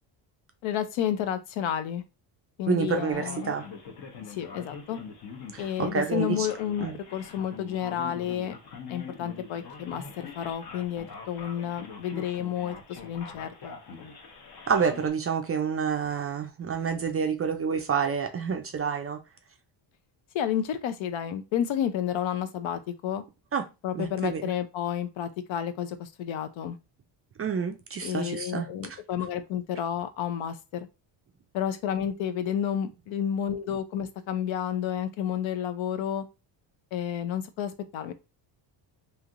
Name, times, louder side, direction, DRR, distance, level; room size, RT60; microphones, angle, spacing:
voice 1, 0.6-2.0 2.6-3.5 4.3-5.0 5.6-8.5 8.9-13.7 20.3-23.2 23.8-26.8 28.0-30.9 31.5-36.2 36.9-38.1, left 9 dB, 70° left, 0.6 m, -31 dB
voice 2, 2.7-3.6 5.5-6.5 6.8-7.0 14.7-19.2 23.5-23.7 23.9-24.5 27.4-28.7, right 6 dB, 30° right, 0.4 m, -28 dB
Male speech man speaking, 3.1-15.1, left 5 dB, 50° left, 0.9 m, -43 dB
3.2 x 2.8 x 2.5 m
cardioid pair, 110°, 49 cm